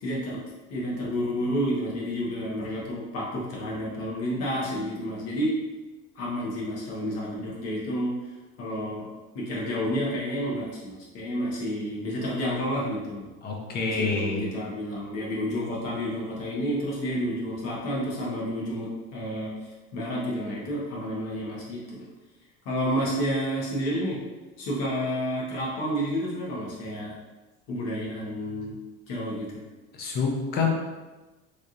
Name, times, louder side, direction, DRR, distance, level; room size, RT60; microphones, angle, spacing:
voice 1, 0.0-0.4 0.7-5.5 6.1-8.1 8.6-9.1 9.3-13.3 13.9-19.5 19.9-22.0 22.6-24.2 24.6-27.1 27.7-28.8 29.1-29.5, equal, 60° left, -4 dB, 1.1 m, -30 dB
voice 2, 13.4-14.5 29.9-30.7, left 4 dB, 35° left, 1 dB, 0.5 m, -27 dB
3.3 x 2.7 x 2.4 m, 1.2 s
cardioid pair, 155°, 29 cm